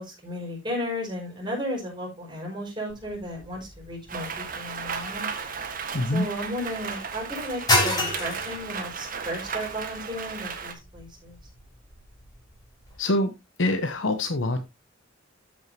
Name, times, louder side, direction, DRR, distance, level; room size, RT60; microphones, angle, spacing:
voice 1, 0.0-5.3 6.1-11.4, equal, 25° right, 5.2 m, -34 dB
sound 1, 2.9-13.0, left 1 dB, 20° left, 4.4 m, -32 dB
Rain, 4.1-10.7, right 6 dB, 45° right, 1.4 m, -35 dB
voice 2, 5.9-6.3 13.0-13.3 13.6-14.6, left 1 dB, 70° left, 0.9 m, -25 dB
13.5 x 6.4 x 2.8 m
head